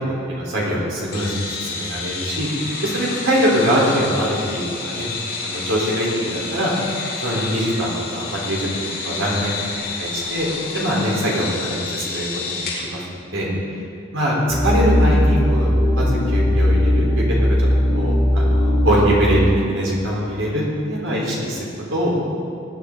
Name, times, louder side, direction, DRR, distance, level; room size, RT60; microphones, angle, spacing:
voice 1, 0.3-2.5 2.8-5.1 5.4-6.1 6.5-6.7 7.2-9.5 10.0-10.5 10.7-13.0 13.3-13.5 14.1-14.3 14.6-17.2 17.6-19.4 19.7-22.2, equal, 75° right, -4 dB, 3.8 m, -23 dB
sound 1, 1.1-12.9, left 4 dB, 50° left, 3.1 m, -30 dB
sound 2, 14.5-19.5, left 1 dB, 5° left, 2.3 m, -18 dB
19.5 x 9.8 x 3.8 m, 2.5 s
head